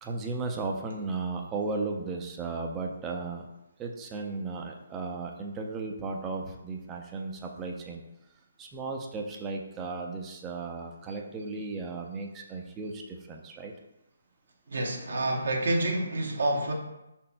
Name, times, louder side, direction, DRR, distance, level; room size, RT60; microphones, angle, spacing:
voice 1, 0.0-3.4 3.8-8.0 8.6-13.7, right 3 dB, 15° right, 1 dB, 0.5 m, -35 dB
voice 2, 14.7-16.7, right 1 dB, 65° right, 1 dB, 0.8 m, -28 dB
5.2 x 4.2 x 2.2 m, 0.92 s
figure-of-eight pair, 140°, 0 cm